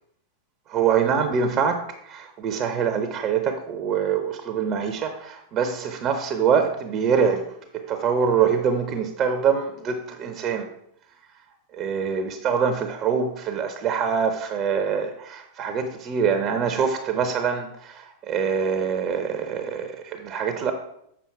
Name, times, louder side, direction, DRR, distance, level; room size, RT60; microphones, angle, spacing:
voice 1, 0.7-7.4 7.7-10.7 11.7-20.7, right 6 dB, 35° right, 7 dB, 0.8 m, -24 dB
7.3 x 5.7 x 4.6 m, 0.74 s
figure-of-eight pair, 90°, 0 cm